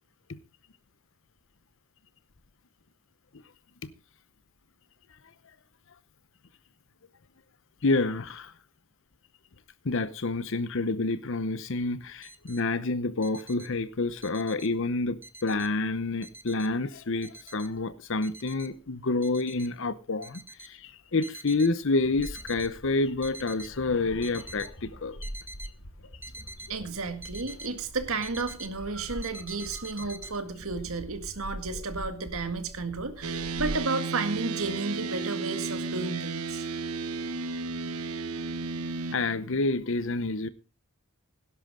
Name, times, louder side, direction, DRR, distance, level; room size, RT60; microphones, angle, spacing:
voice 1, 7.8-8.5 9.8-25.2 39.1-40.5, left 3 dB, 60° left, 0.8 m, -28 dB
sound 1, 12.0-12.6 13.0-14.8 15.2-15.9 16.2-17.9 18.2-18.7 19.2-19.8 20.2-21.8 22.1-22.7 23.1-23.8 24.1-24.7 25.2-27.7 28.0-28.8 29.2-30.4, right 1 dB, 10° right, 0.7 m, -45 dB
sound 2, 22.0-33.8, equal, 90° left, 3.9 m, -43 dB
voice 2, 26.7-36.7, right 3 dB, 70° right, 1.9 m, -32 dB
Dist Chr E oct up, 33.2-39.2, right 4 dB, 85° right, 1.1 m, -33 dB
17.5 x 11.0 x 3.7 m
head